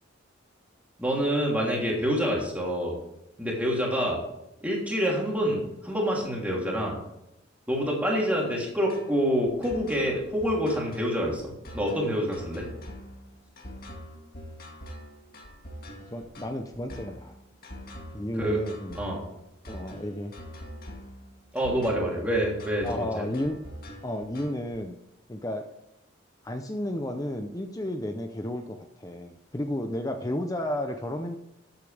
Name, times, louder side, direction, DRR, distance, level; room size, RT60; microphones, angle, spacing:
voice 1, 1.0-2.9 3.4-4.2 4.6-7.0 7.7-12.7 18.4-18.6 18.9-19.2 21.5-23.2, equal, 5° right, -3 dB, 3.1 m, -27 dB
sound 1, 8.9-24.8, equal, 45° left, 2.1 m, -43 dB
voice 2, 16.1-17.4 18.1-19.0 19.7-20.4 22.8-23.6 24.0-25.0 25.3-25.7 26.4-31.4, left 1 dB, 15° left, 5 dB, 0.6 m, -32 dB
13.5 x 8.5 x 3.4 m, 0.86 s
head